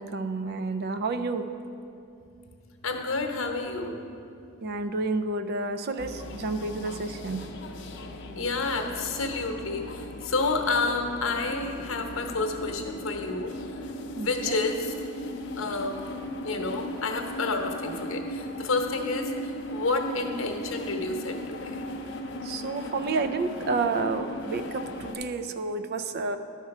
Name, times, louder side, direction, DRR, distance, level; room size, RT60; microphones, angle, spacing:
voice 1, 0.0-1.5 4.6-7.5 14.1-14.6 22.4-26.4, right 3 dB, 50° right, 9 dB, 0.4 m, -30 dB
voice 2, 2.8-3.9 8.3-13.5 13.8-13.9 14.2-14.9 15.6-16.1 16.4-21.8, left 3 dB, 90° left, 4 dB, 0.9 m, -30 dB
sound 1, 6.0-25.2, left 1 dB, 60° left, 0.6 m, -37 dB
11.5 x 4.3 x 5.9 m, 2.6 s
head